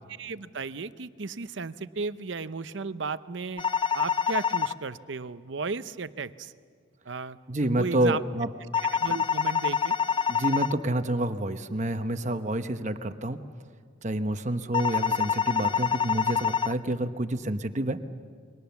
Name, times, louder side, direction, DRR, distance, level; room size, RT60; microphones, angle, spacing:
voice 1, 0.2-3.6 3.9-6.5 7.1-7.4 7.8-8.2 8.9-10.0, right 4 dB, 65° right, 13 dB, 0.7 m, -34 dB
sound 1, 3.6-4.7 8.7-10.7 14.7-16.7, left 7 dB, 25° left, 0.6 m, -26 dB
voice 2, 7.5-8.5 10.3-13.4 14.0-18.0, right 1 dB, 35° right, 9 dB, 1.0 m, -28 dB
29.5 x 23.5 x 7.1 m, 2.1 s
head